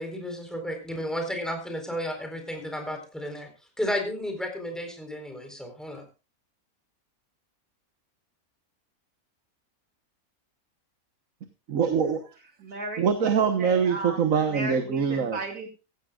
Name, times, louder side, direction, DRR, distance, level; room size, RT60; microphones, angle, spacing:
voice 1, 0.0-3.5 3.8-6.0, equal, ahead, 4 dB, 4.1 m, -33 dB
voice 2, 11.7-12.2 13.0-15.4, right 6 dB, 65° right, 7 dB, 1.6 m, -24 dB
voice 3, 12.6-13.1 13.6-14.2 14.4-15.7, right 2 dB, 85° right, 2 dB, 3.2 m, -35 dB
15.5 x 15.5 x 2.4 m, 0.30 s
omnidirectional pair, 1.6 m